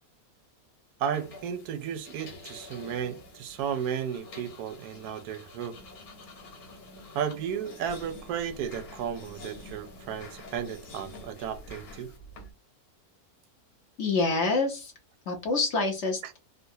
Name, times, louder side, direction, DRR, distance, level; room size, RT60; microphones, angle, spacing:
voice 1, 1.0-5.8 7.1-12.1, right 8 dB, 90° right, 1.1 m, -34 dB
sound 1, 1.1-12.5, left 2 dB, 75° left, 1.5 m, -48 dB
voice 2, 14.0-14.9 15.3-16.4, left 3 dB, 55° left, 1.1 m, -27 dB
3.9 x 2.1 x 2.7 m
omnidirectional pair, 1.6 m